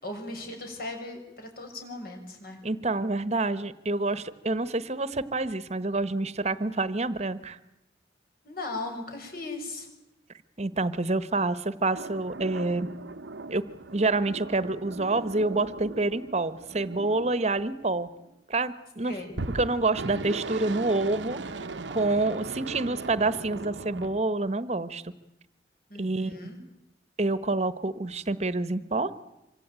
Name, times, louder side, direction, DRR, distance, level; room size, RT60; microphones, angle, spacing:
voice 1, 0.0-2.6 8.4-9.9 19.0-19.3 25.9-26.6, left 2 dB, 55° left, 4 dB, 6.7 m, -38 dB
voice 2, 2.6-7.6 10.6-12.9 13.5-13.6 13.9-18.1 18.5-19.1 19.5-21.7 21.9-25.1 25.9-26.5 27.2-29.1, right 2 dB, 35° right, 14 dB, 1.2 m, -27 dB
sound 1, 11.9-18.3 19.3-24.2, right 3 dB, 80° right, 1.0 m, -39 dB
26.5 x 24.0 x 9.0 m, 0.90 s
head